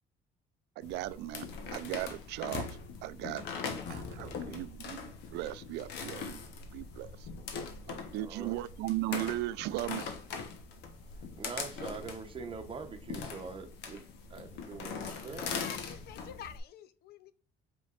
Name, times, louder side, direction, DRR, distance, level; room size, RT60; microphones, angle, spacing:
sound 1, 0.8-16.6, left 5 dB, 85° left, 1.1 m, -41 dB
voice 1, 0.8-1.5 1.7-2.7 3.0-3.4 3.9-6.4 6.7-7.3 7.9-10.1, right 16 dB, 85° right, 0.4 m, -37 dB
voice 2, 4.2-4.6 8.2-8.6 11.1-14.0 14.3-15.6, right 4 dB, 30° right, 0.9 m, -44 dB
voice 3, 15.5-17.3, left 9 dB, 70° left, 0.6 m, -48 dB
5.2 x 3.9 x 2.5 m
cardioid pair, 110°, 17 cm